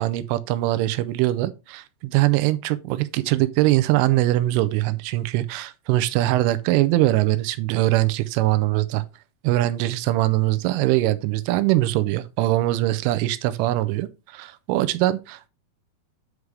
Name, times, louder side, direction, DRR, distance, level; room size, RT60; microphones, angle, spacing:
voice 1, 0.0-9.0 9.4-15.5, right 16 dB, 85° right, 3.1 m, -22 dB
9.6 x 4.8 x 3.2 m
omnidirectional pair, 5.6 m